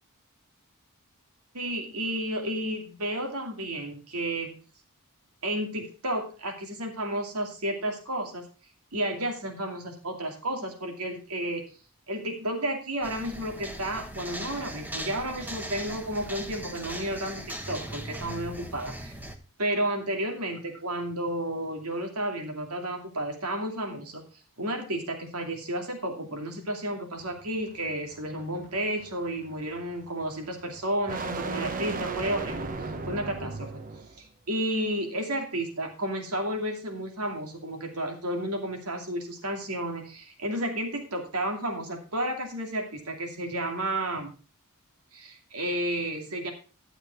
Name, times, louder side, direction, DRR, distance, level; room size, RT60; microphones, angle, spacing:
voice 1, 1.5-4.6 5.4-8.4 8.9-11.6 12.1-19.1 19.6-24.2 24.6-32.7 33.1-33.8 34.2-44.3 45.1-46.5, right 1 dB, 80° right, 3 dB, 2.7 m, -32 dB
sound 1, 13.0-19.4, right 1 dB, 10° right, 1.1 m, -39 dB
sound 2, 27.2-34.2, right 3 dB, 40° right, 1.0 m, -37 dB
12.0 x 7.1 x 4.5 m, 0.37 s
head